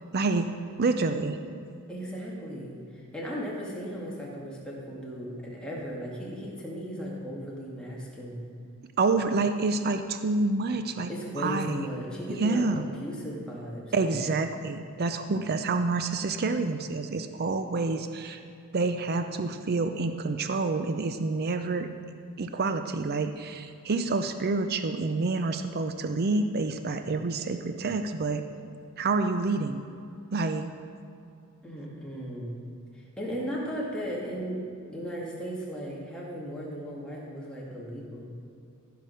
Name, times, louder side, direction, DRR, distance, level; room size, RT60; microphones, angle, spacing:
voice 1, 0.1-0.5 0.8-1.4 9.0-11.1 11.4-11.9 12.3-12.9 13.9-18.4 18.7-21.9 22.4-28.4 29.0-29.8 30.3-30.7, right 3 dB, 45° right, 8 dB, 0.5 m, -28 dB
voice 2, 1.9-8.4 11.1-14.2 31.6-32.6 32.9-34.6 34.9-38.3, equal, 5° left, -5 dB, 2.2 m, -36 dB
15.0 x 5.2 x 6.4 m, 2.6 s
head